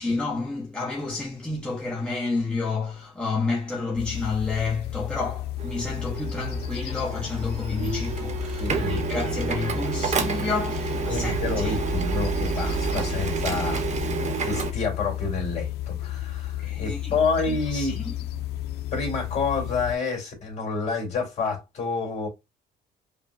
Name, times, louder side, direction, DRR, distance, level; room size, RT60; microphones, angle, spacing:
voice 1, 0.0-11.8 16.6-18.0, left 3 dB, 5° left, 0.9 m, -30 dB
sound 1, 4.0-20.0, left 13 dB, 70° left, 0.4 m, -33 dB
Printer, 5.6-14.7, right 6 dB, 45° right, 1.0 m, -29 dB
voice 2, 8.6-9.0 11.1-18.0 18.9-22.3, left 4 dB, 40° left, 2.1 m, -29 dB
4.9 x 2.2 x 2.5 m
cardioid pair, 110°, 17 cm